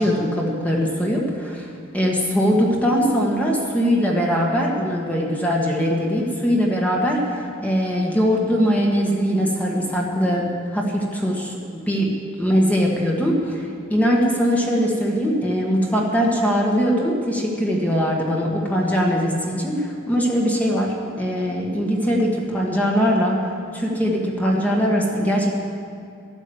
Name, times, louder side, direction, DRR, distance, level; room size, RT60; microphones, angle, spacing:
voice 1, 0.0-1.7 1.9-12.1 12.4-23.4 23.7-25.5, equal, 5° left, -2 dB, 1.7 m, -21 dB
12.5 x 11.5 x 8.0 m, 2.5 s
head